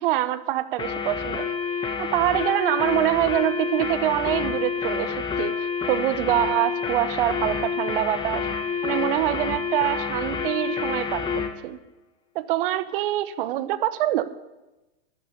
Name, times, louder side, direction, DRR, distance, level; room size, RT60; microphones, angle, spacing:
voice 1, 0.0-1.5 2.0-8.5 8.8-11.8 12.3-14.3, right 14 dB, 55° right, 14 dB, 0.9 m, -25 dB
sound 1, 0.8-11.5, left 6 dB, 15° left, 1.2 m, -28 dB
12.0 x 7.7 x 8.3 m, 1.0 s
hypercardioid pair, 135°, 32 cm